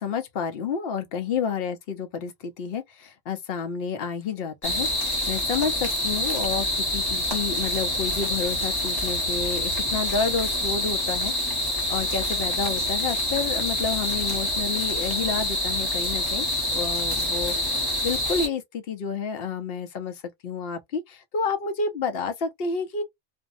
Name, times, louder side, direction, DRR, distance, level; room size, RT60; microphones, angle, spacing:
voice 1, 0.0-11.3 11.9-23.0, left 5 dB, 60° left, 0.8 m, -30 dB
sound 1, 4.6-18.5, left 1 dB, 25° left, 0.7 m, -26 dB
2.6 x 2.1 x 2.4 m
omnidirectional pair, 1.3 m